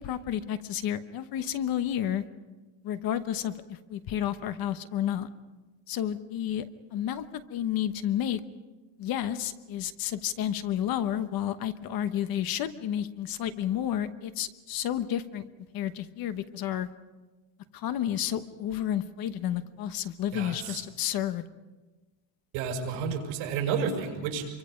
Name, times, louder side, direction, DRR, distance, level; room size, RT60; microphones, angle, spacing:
voice 1, 0.0-2.2 2.8-5.3 5.9-6.6 6.9-7.2 7.5-8.4 9.0-15.4 15.7-16.9 17.7-21.4, left 10 dB, 45° left, 11 dB, 1.1 m, -31 dB
voice 2, 20.3-20.8 22.5-24.6, right 6 dB, 75° right, 2 dB, 6.2 m, -31 dB
27.5 x 24.5 x 5.2 m, 1.2 s
cardioid pair, 165°, 48 cm